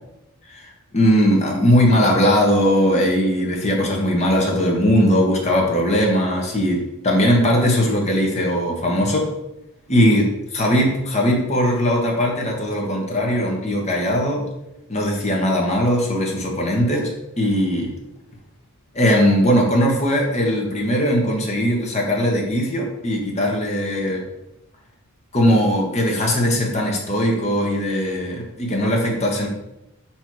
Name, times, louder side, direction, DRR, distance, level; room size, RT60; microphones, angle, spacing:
voice 1, 0.5-9.3 9.9-10.3 10.5-14.5 14.9-17.9 18.9-24.2 25.3-29.5, equal, 30° left, -1 dB, 1.3 m, -19 dB
5.5 x 4.4 x 4.7 m, 0.88 s
head